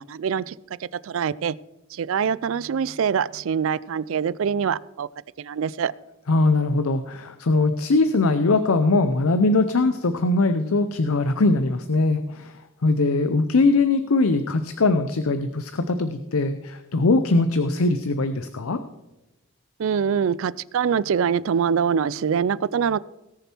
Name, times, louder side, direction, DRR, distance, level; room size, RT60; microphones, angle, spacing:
voice 1, 0.0-1.6 1.9-5.1 5.4-5.9 19.8-23.0, right 7 dB, 65° right, 20 dB, 0.3 m, -24 dB
voice 2, 6.3-18.8, left 3 dB, 75° left, 10 dB, 0.7 m, -21 dB
18.0 x 6.8 x 4.5 m, 1.0 s
head